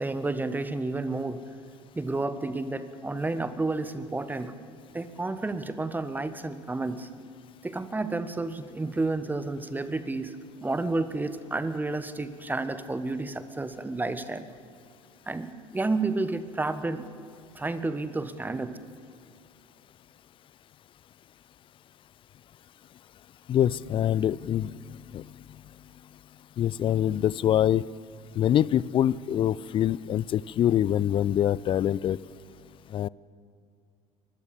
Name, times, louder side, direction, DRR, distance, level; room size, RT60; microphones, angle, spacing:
voice 1, 0.0-1.4 1.9-4.5 4.9-7.1 7.6-10.4 10.6-14.5 15.3-17.1 17.5-18.8, right 2 dB, 10° right, 12 dB, 1.3 m, -31 dB
voice 2, 23.5-25.2 26.6-27.9 28.3-32.2 32.9-33.1, left 11 dB, 30° left, 22 dB, 0.4 m, -25 dB
24.5 x 20.5 x 7.1 m, 2.3 s
figure-of-eight pair, 65°, 17 cm